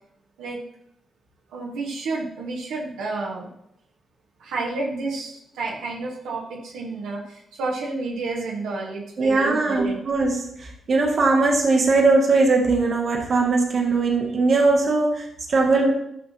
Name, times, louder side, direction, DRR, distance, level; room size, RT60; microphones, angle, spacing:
voice 1, 1.5-3.5 4.4-10.0, right 3 dB, 80° right, -3 dB, 1.6 m, -30 dB
voice 2, 9.2-15.9, right 3 dB, 55° right, 1 dB, 1.5 m, -20 dB
13.0 x 5.6 x 2.9 m, 0.77 s
hypercardioid pair, 40°, 0 cm